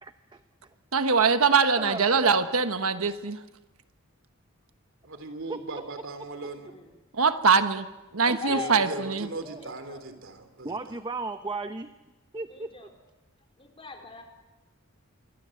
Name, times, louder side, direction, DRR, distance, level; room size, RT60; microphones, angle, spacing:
voice 1, 0.0-0.4 1.8-2.4 5.5-5.8 8.2-8.6 9.4-9.6 10.6-11.9 12.3-12.7, right 3 dB, 20° right, 9 dB, 0.8 m, -36 dB
voice 2, 0.9-3.4 7.1-7.9 8.1-9.3, right 5 dB, 85° right, 9 dB, 1.3 m, -23 dB
voice 3, 5.0-6.7 8.5-11.0, right 2 dB, 65° right, 8 dB, 3.5 m, -38 dB
voice 4, 6.3-6.9 8.4-8.9 9.5-10.0 12.5-12.9 13.6-14.2, left 3 dB, 25° left, 2 dB, 4.2 m, -40 dB
26.5 x 23.5 x 7.9 m, 1.1 s
head